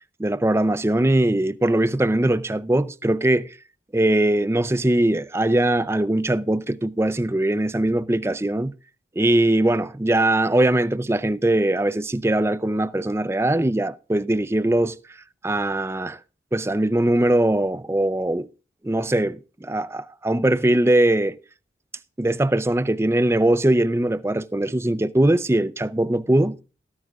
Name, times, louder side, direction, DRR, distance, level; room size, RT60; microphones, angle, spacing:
voice 1, 0.2-3.6 3.9-8.7 9.2-15.0 15.4-16.2 16.5-18.5 18.8-21.4 22.2-26.5, right 1 dB, 15° right, 0.4 m, -21 dB
13.5 x 13.5 x 2.4 m
head